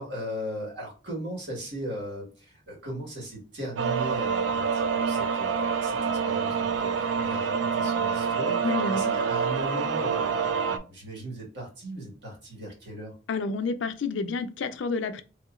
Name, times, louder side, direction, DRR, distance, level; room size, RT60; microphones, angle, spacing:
voice 1, 0.0-8.6 8.9-13.1, right 1 dB, 65° right, 1.7 m, -38 dB
sound 1, 3.8-10.8, right 6 dB, 80° right, 0.4 m, -27 dB
voice 2, 8.6-9.2 13.3-15.2, left 4 dB, 75° left, 0.4 m, -29 dB
3.5 x 2.8 x 2.4 m
head